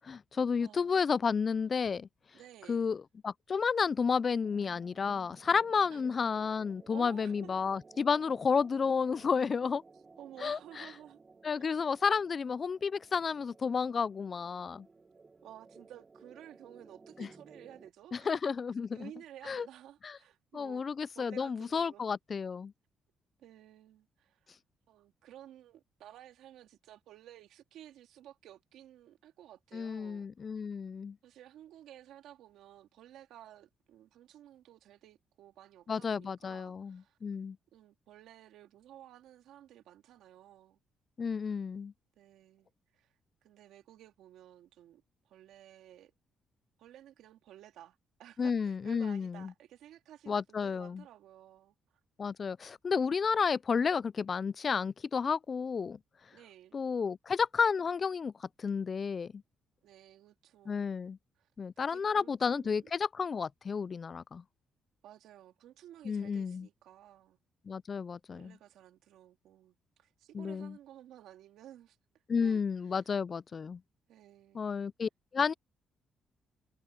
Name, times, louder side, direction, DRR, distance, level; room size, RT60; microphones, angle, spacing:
voice 1, 0.0-2.1 2.7-9.8 10.4-10.9 11.4-14.9 17.2-17.3 18.1-19.1 19.5-19.7 20.0-20.2 20.5-22.7 29.7-31.2 35.9-37.6 41.2-41.9 48.4-49.5 50.3-51.0 52.2-56.0 56.7-59.4 60.7-61.2 61.6-64.4 66.0-66.7 67.7-68.6 70.3-70.8 72.3-73.8 74.5-75.5, left 5 dB, 40° left, 0.3 m, -32 dB
voice 2, 0.6-1.1 2.3-2.9 5.9-6.0 6.9-7.5 10.2-11.2 15.4-18.3 18.9-20.9 21.1-22.1 23.4-24.5 24.9-30.6 31.2-37.2 37.7-40.8 42.2-43.1 43.4-46.1 46.8-51.7 56.3-56.8 59.8-61.1 61.4-61.5 61.8-62.9 65.0-67.4 68.3-72.0 72.4-72.6 72.9-73.0 74.1-74.7, right 12 dB, 85° right, 2.6 m, -54 dB
sound 1, 4.4-17.9, right 4 dB, 30° right, 1.1 m, -57 dB
cardioid pair, 90°, 0 cm